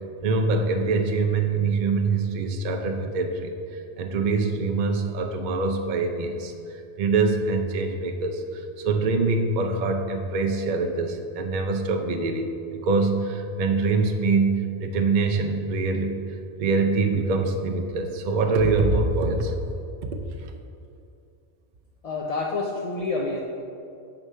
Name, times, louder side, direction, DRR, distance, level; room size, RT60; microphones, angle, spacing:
voice 1, 0.2-16.2 16.6-19.6 20.0-20.1, right 3 dB, 50° right, 4 dB, 0.6 m, -24 dB
voice 2, 22.0-23.4, left 3 dB, 45° left, -2 dB, 0.5 m, -28 dB
7.1 x 4.7 x 5.5 m, 2.6 s
omnidirectional pair, 1.2 m